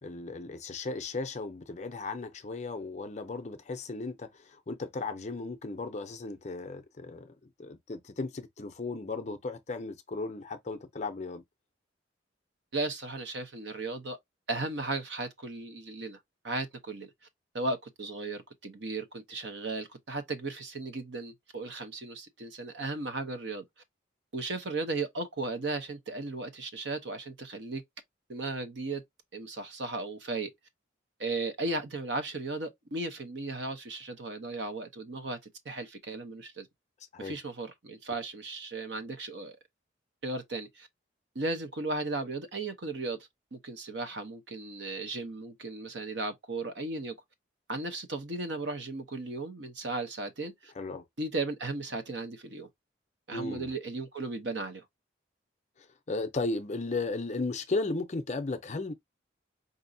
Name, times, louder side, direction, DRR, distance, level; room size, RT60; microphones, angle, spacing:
voice 1, 0.0-11.4 37.1-37.4 50.7-51.0 53.3-53.7 55.8-58.9, left 3 dB, 35° left, 0.5 m, -35 dB
voice 2, 12.7-14.2 14.5-16.2 16.4-17.1 17.5-23.6 24.3-27.8 28.3-29.0 29.3-30.5 31.2-35.4 35.6-36.7 37.2-39.6 40.2-40.9 41.3-43.2 43.5-47.1 47.7-50.7 51.2-52.7 53.3-54.8, right 3 dB, 70° right, 0.8 m, -36 dB
4.9 x 2.7 x 2.6 m
head